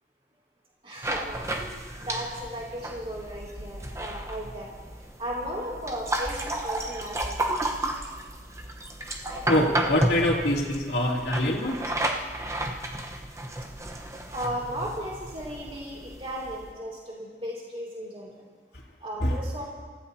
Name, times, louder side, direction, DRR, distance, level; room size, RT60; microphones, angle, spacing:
voice 1, 0.8-4.7 5.2-7.4 14.3-18.4 19.0-19.6, equal, 30° right, -4 dB, 2.7 m, -36 dB
sound 1, 1.0-16.7, right 1 dB, 15° right, 0.9 m, -32 dB
voice 2, 9.5-11.8 19.2-19.4, left 1 dB, 70° left, -4 dB, 2.7 m, -24 dB
28.5 x 15.5 x 2.8 m, 1.5 s
head